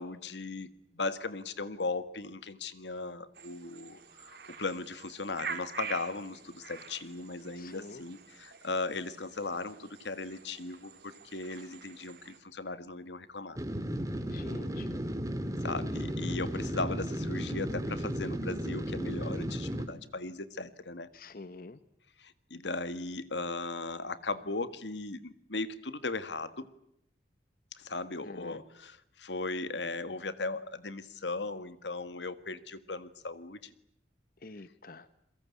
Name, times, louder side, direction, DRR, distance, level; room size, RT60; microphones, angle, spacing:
voice 1, 0.0-13.6 15.6-21.1 22.2-26.7 27.8-33.7, left 3 dB, 90° left, 12 dB, 1.8 m, -37 dB
sound 1, 3.3-12.4, right 6 dB, 65° right, 3.9 m, -46 dB
voice 2, 7.6-8.0 14.3-14.9 21.1-21.8 28.2-28.6 34.4-35.1, left 3 dB, 55° left, 13 dB, 1.0 m, -47 dB
sound 2, 13.6-19.9, equal, 20° right, 2.5 m, -34 dB
29.0 x 23.0 x 8.5 m, 0.73 s
head